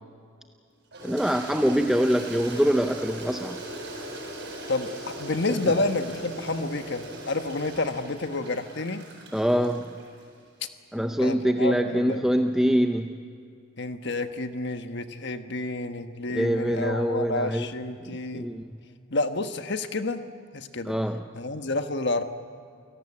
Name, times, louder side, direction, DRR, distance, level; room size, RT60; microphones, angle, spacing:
Toilet flush, 0.9-10.3, right 1 dB, 55° right, 7.6 m, -39 dB
voice 1, 1.0-3.6 5.6-5.7 9.3-9.9 10.9-13.2 16.3-17.7 18.0-18.7 20.8-21.2, equal, ahead, 6 dB, 0.6 m, -24 dB
voice 2, 5.2-9.0 11.2-12.3 13.8-18.4 19.1-20.2 20.5-20.9 21.3-22.2, left 2 dB, 55° left, 8 dB, 1.4 m, -29 dB
28.5 x 18.0 x 8.6 m, 2.4 s
head